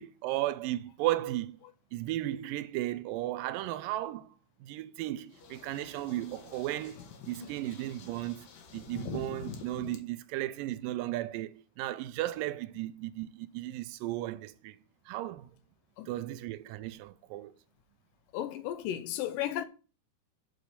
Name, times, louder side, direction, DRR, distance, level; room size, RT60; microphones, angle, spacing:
voice 1, 0.0-1.6 1.9-4.3 4.6-7.0 7.3-14.8 15.1-15.5 16.1-17.5, right 15 dB, 80° right, 2.1 m, -35 dB
sound 1, 5.3-10.0, left 5 dB, 65° left, 2.0 m, -45 dB
voice 2, 16.0-16.3 18.3-19.6, left 11 dB, 80° left, 2.2 m, -34 dB
6.9 x 4.9 x 6.7 m
omnidirectional pair, 4.0 m